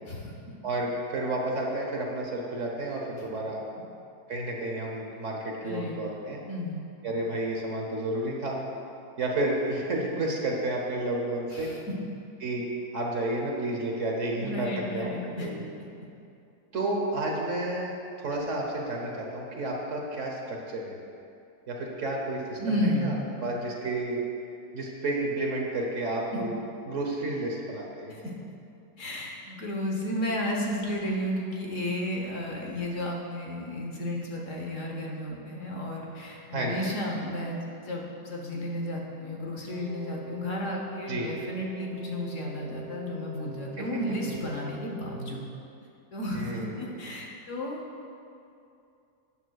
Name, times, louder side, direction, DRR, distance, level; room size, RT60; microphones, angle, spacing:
voice 1, 0.6-3.6 4.3-6.4 7.0-8.6 9.2-11.7 12.4-12.7 12.9-15.7 16.7-17.9 18.2-21.0 21.7-23.1 23.4-24.2 24.7-26.6 26.9-28.2 36.5-37.0 41.1-41.3 43.8-43.9 46.3-46.9, right 2 dB, 55° right, -1 dB, 1.3 m, -31 dB
voice 2, 5.6-6.0 6.5-6.8 11.5-11.8 14.4-15.5 22.6-23.2 26.3-26.4 28.1-28.3 29.0-45.4 46.1-47.8, left 1 dB, 55° left, -1 dB, 1.3 m, -33 dB
Wind instrument woodwind instrument, 39.7-45.4, right 1 dB, 85° right, 2.4 m, -44 dB
12.5 x 9.1 x 2.3 m, 2.6 s
omnidirectional pair, 1.7 m